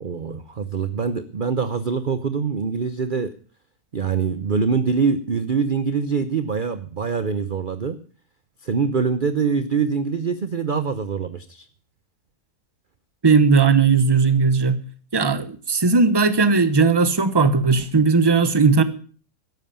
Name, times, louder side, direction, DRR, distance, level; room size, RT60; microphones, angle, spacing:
voice 1, 0.0-3.3 3.9-8.0 8.6-11.7, right 5 dB, 40° right, 12 dB, 0.9 m, -24 dB
voice 2, 13.2-14.8 15.1-18.8, right 4 dB, 20° right, 13 dB, 1.0 m, -17 dB
13.5 x 11.0 x 6.9 m, 0.41 s
omnidirectional pair, 1.6 m